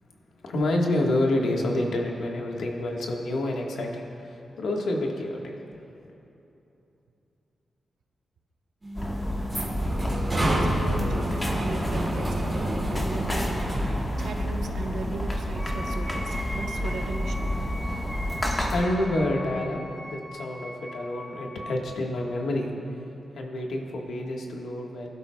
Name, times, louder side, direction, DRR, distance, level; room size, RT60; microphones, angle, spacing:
voice 1, 0.4-5.5 18.3-23.0 23.3-25.1, left 1 dB, 90° left, 0 dB, 1.4 m, -28 dB
sound 1, 8.8-14.1, right 1 dB, 15° right, 2.2 m, -30 dB
sound 2, 8.9-18.8, equal, 20° left, 1.3 m, -29 dB
voice 2, 10.3-13.7 14.2-17.7, right 4 dB, 90° right, 4 dB, 0.8 m, -37 dB
Wind instrument woodwind instrument, 15.5-21.9, equal, ahead, 1.0 m, -40 dB
21.5 x 12.0 x 2.3 m, 2.9 s
wide cardioid pair, 145°, 0 cm